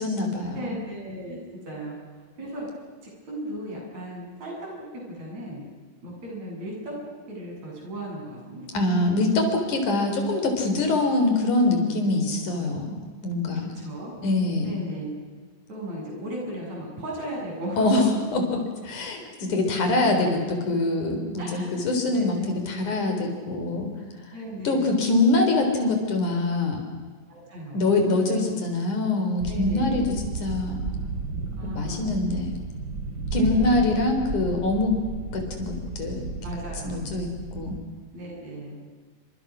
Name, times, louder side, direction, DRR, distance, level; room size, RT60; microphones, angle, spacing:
voice 1, 0.0-0.8 8.7-13.0 13.2-13.7 14.2-14.8 17.8-18.0 18.3-18.6 18.8-23.9 24.6-26.8 27.7-30.1 30.4-30.8 31.6-32.6 33.3-34.9 35.3-36.2 36.8-37.7, left 2 dB, 65° left, 4 dB, 5.4 m, -24 dB
voice 2, 0.5-2.0 2.4-2.7 3.0-4.7 4.9-5.6 6.0-6.9 7.3-8.8 13.8-14.1 14.6-15.2 15.7-18.0 21.4-21.7 22.0-22.6 24.3-24.9 27.3-27.9 29.4-30.1 31.6-32.1 33.3-33.7 36.4-37.1 38.1-38.8, right 1 dB, 55° right, -2 dB, 9.4 m, -36 dB
sound 1, 29.4-37.8, right 4 dB, 35° right, 2.7 m, -33 dB
29.0 x 26.0 x 6.4 m, 1.5 s
omnidirectional pair, 3.7 m